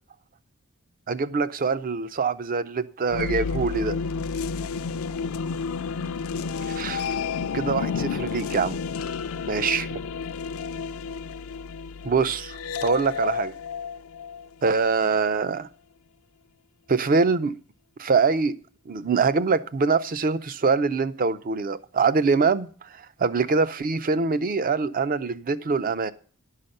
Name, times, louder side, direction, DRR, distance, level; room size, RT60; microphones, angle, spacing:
voice 1, 1.1-4.0 6.7-7.2 7.5-8.8 9.5-9.9 12.0-13.5 14.6-15.7 16.9-17.5 18.0-18.6 18.9-26.1, right 4 dB, 40° right, 0.5 m, -24 dB
sound 1, 3.1-14.9, left 5 dB, 70° left, 0.4 m, -31 dB
11.5 x 5.7 x 6.5 m
head